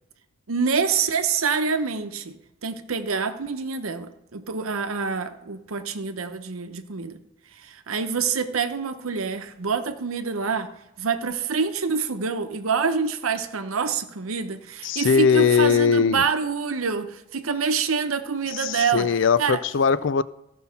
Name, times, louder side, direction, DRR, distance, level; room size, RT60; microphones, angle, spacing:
voice 1, 0.5-2.4 2.6-7.2 7.6-10.7 11.0-19.1 19.4-19.6, right 5 dB, 90° right, 0.8 m, -26 dB
voice 2, 14.8-16.2 18.5-20.2, left 6 dB, 60° left, 0.4 m, -20 dB
15.0 x 5.5 x 5.7 m
head